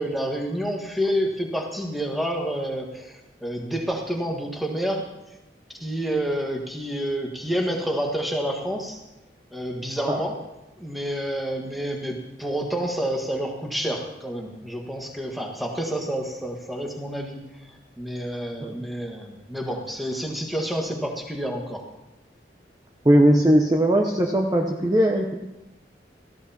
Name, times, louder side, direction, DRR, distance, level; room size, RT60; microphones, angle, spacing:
voice 1, 0.0-5.1 5.7-9.0 9.5-10.4 10.8-21.8, equal, ahead, 1 dB, 1.5 m, -29 dB
voice 2, 23.0-25.3, right 1 dB, 20° right, 1 dB, 0.8 m, -19 dB
18.0 x 14.0 x 2.9 m, 0.94 s
head